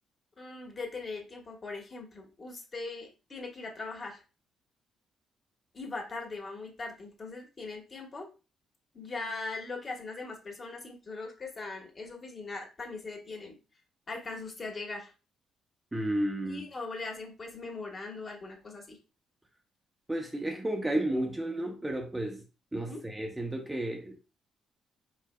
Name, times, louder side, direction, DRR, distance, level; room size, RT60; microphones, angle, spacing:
voice 1, 0.4-4.2 5.7-8.3 8.9-13.6 14.1-15.1 16.4-19.0 22.9-23.0, left 3 dB, 35° left, 1.4 m, -40 dB
voice 2, 15.9-16.6 20.1-22.4 22.7-24.2, right 1 dB, 10° right, 0.6 m, -32 dB
4.7 x 4.6 x 2.2 m
cardioid pair, 120°, 0 cm